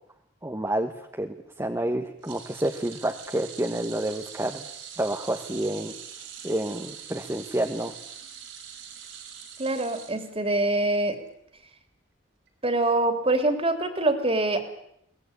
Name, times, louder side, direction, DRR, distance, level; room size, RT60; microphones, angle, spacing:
voice 1, 0.4-0.9 1.2-4.6 5.0-5.9 6.4-7.9, right 1 dB, 15° right, 4 dB, 1.4 m, -29 dB
sound 1, 2.2-10.7 11.0-11.3 12.5-12.6, right 8 dB, 80° right, 5.6 m, -43 dB
voice 2, 9.6-11.2 12.6-14.6, right 2 dB, 30° right, 8 dB, 3.1 m, -24 dB
22.5 x 19.5 x 9.9 m, 0.76 s
head